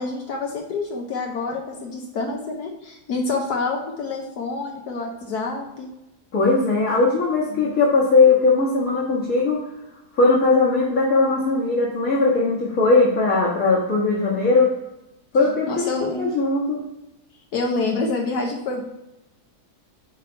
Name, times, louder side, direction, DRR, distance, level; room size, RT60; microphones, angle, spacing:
voice 1, 0.0-5.9 15.7-16.3 17.5-18.8, left 3 dB, 75° left, 1 dB, 1.4 m, -27 dB
voice 2, 6.3-9.6 10.1-14.7 15.3-16.8, left 3 dB, 60° left, -6 dB, 1.9 m, -19 dB
9.1 x 3.3 x 4.5 m, 0.91 s
omnidirectional pair, 1.7 m